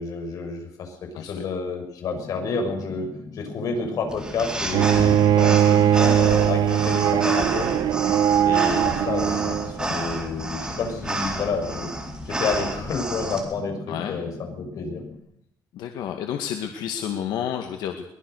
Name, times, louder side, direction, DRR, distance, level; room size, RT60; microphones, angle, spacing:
voice 1, 0.0-3.1 3.3-7.8 8.4-11.9 12.2-15.0, left 4 dB, 55° left, 4 dB, 6.3 m, -29 dB
sound 1, 2.1-15.2, left 4 dB, 35° left, 5.2 m, -41 dB
sound 2, 4.1-13.4, right 2 dB, 10° right, 4.0 m, -30 dB
Bowed string instrument, 4.7-9.8, right 10 dB, 65° right, 1.1 m, -20 dB
voice 2, 13.9-14.2 15.7-18.1, left 9 dB, 80° left, 5 dB, 2.1 m, -30 dB
23.0 x 20.5 x 6.6 m, 0.72 s
cardioid pair, 155°, 7 cm